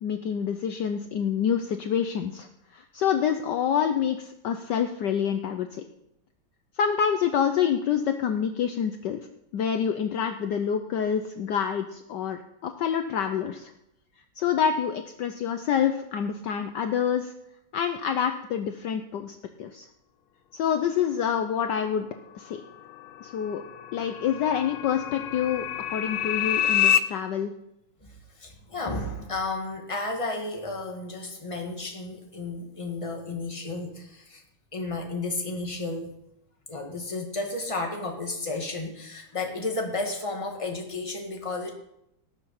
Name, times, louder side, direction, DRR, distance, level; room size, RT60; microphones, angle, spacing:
voice 1, 0.0-2.5 2.7-5.8 6.8-9.2 9.5-13.7 14.4-17.3 17.7-19.9 20.5-22.1 22.3-22.6 23.2-23.6 23.9-25.6 25.9-27.5, left 8 dB, 65° left, 7 dB, 1.2 m, -27 dB
sound 1, 22.7-27.0, left 10 dB, 90° left, 1.5 m, -27 dB
voice 2, 28.0-34.4 34.7-36.1 36.7-41.7, left 2 dB, 15° left, 2 dB, 1.7 m, -33 dB
18.5 x 6.8 x 5.8 m, 0.82 s
omnidirectional pair, 2.3 m